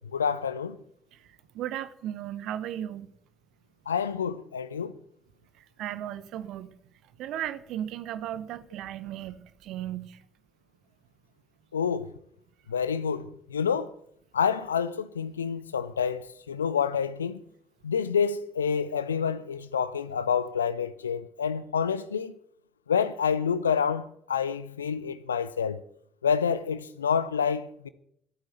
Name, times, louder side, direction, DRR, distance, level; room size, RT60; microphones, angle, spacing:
voice 1, 0.1-0.8 3.9-4.9 11.7-12.1 12.7-13.9 14.3-17.4 17.8-22.3 22.9-25.8 26.2-27.9, left 7 dB, 80° left, 0.6 m, -28 dB
voice 2, 1.1-3.1 5.5-6.7 7.2-10.2, right 11 dB, 60° right, 0.9 m, -36 dB
14.5 x 8.9 x 6.8 m
figure-of-eight pair, 50°, 0 cm